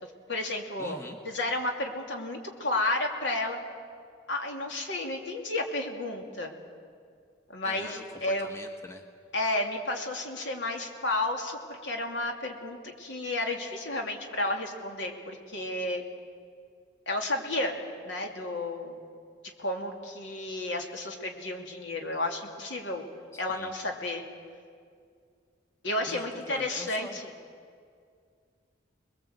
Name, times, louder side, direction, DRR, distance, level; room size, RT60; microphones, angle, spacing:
voice 1, 0.0-1.0 1.2-3.6 4.3-6.5 7.5-8.5 9.3-16.0 17.1-17.8 18.0-19.0 19.6-23.0 23.4-24.2 25.8-27.2, left 2 dB, 70° left, 3 dB, 2.8 m, -32 dB
voice 2, 0.8-1.2 7.6-9.1 23.3-23.7 26.1-27.2, left 1 dB, 15° left, 5 dB, 1.1 m, -44 dB
26.5 x 21.0 x 8.1 m, 2.2 s
head